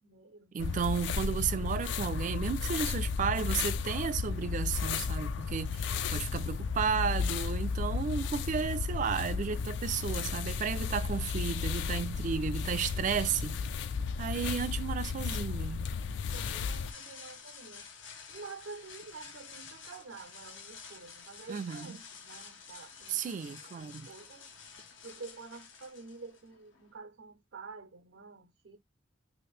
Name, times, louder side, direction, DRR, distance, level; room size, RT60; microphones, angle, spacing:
voice 1, 0.0-0.5 16.3-17.9 18.3-24.5 25.0-28.8, right 4 dB, 90° right, 0.7 m, -49 dB
voice 2, 0.5-13.6 14.2-15.9 21.5-21.9 23.1-24.1, right 6 dB, 45° right, 0.3 m, -33 dB
sound 1, 0.6-16.9, left 5 dB, 65° left, 0.3 m, -33 dB
sound 2, 16.3-26.9, left 6 dB, 90° left, 0.8 m, -50 dB
2.8 x 2.5 x 3.2 m
head